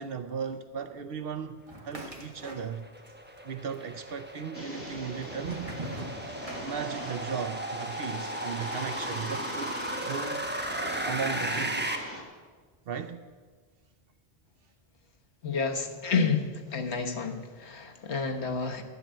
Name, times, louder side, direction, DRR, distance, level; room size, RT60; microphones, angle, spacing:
voice 1, 0.0-2.9 3.4-5.7 6.6-9.8 10.0-10.5 11.0-11.9 12.9-13.2, right 7 dB, 65° right, 0.8 m, -36 dB
sound 1, 1.7-3.1 3.4-4.1 4.7-7.2, right 1 dB, 35° right, 1.7 m, -42 dB
sound 2, 2.4-11.9, right 1 dB, 10° right, 1.0 m, -35 dB
sound 3, 4.5-12.2, equal, 10° left, 1.8 m, -42 dB
voice 2, 15.4-16.5 16.7-18.8, left 5 dB, 85° left, 1.5 m, -29 dB
10.5 x 10.0 x 7.6 m
omnidirectional pair, 1.1 m